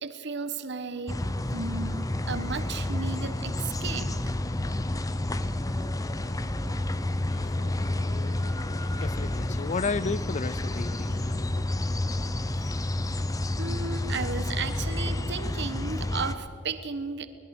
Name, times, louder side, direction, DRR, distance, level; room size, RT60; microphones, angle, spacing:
voice 1, 0.0-1.2 1.5-4.1 13.6-17.3, right 4 dB, 60° right, 1.3 m, -34 dB
sound 1, 1.1-16.4, left 1 dB, 15° left, 0.8 m, -30 dB
voice 2, 7.3-11.7 12.1-12.2, left 4 dB, 35° left, 0.4 m, -35 dB
24.5 x 20.0 x 6.1 m
head